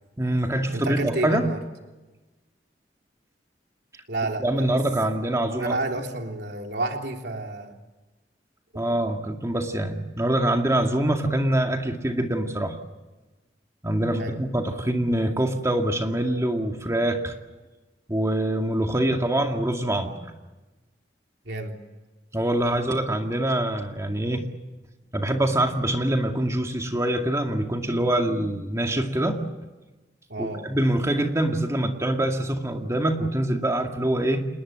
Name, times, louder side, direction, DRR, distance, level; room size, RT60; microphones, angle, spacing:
voice 1, 0.2-1.4 4.4-6.0 8.8-12.8 13.8-17.3 18.1-20.2 22.3-24.4 25.1-29.4 30.4-34.5, right 1 dB, 20° right, 3 dB, 2.1 m, -24 dB
voice 2, 0.7-1.6 4.1-4.8 5.6-7.8 8.7-8.8 14.2-14.4 21.4-21.8 30.3-30.7, right 2 dB, 70° right, 2 dB, 3.4 m, -30 dB
29.0 x 20.0 x 7.6 m, 1.1 s
head